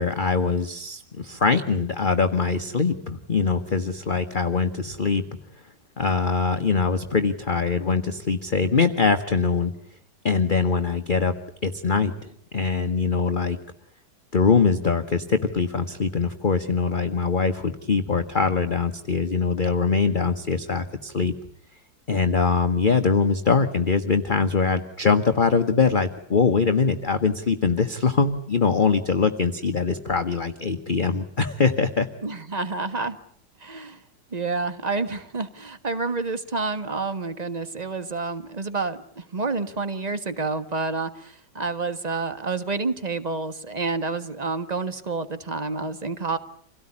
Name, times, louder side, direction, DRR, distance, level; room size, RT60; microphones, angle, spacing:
voice 1, 0.0-5.2 6.0-9.7 10.2-11.3 11.6-13.6 14.3-21.3 22.1-32.1, left 4 dB, 30° left, 7 dB, 1.1 m, -23 dB
voice 2, 32.2-33.2 33.6-34.0 34.3-46.4, right 3 dB, 25° right, 11 dB, 1.3 m, -29 dB
27.0 x 17.5 x 9.8 m, 0.65 s
omnidirectional pair, 2.0 m